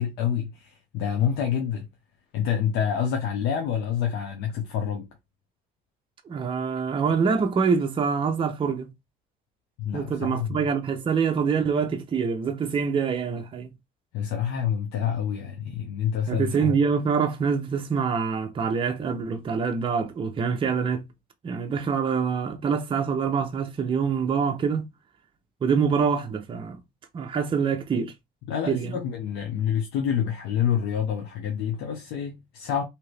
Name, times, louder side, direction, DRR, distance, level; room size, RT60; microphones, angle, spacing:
voice 1, 0.0-1.9 2.3-5.1 9.8-10.6 14.1-16.7 28.5-32.8, left 8 dB, 85° left, 0.7 m, -27 dB
voice 2, 6.2-8.9 9.9-13.7 16.3-21.1 21.4-24.9 25.6-26.8 27.1-28.1 28.7-29.0, right 6 dB, 30° right, 0.6 m, -25 dB
2.8 x 2.5 x 3.2 m
cardioid pair, 110°, 17 cm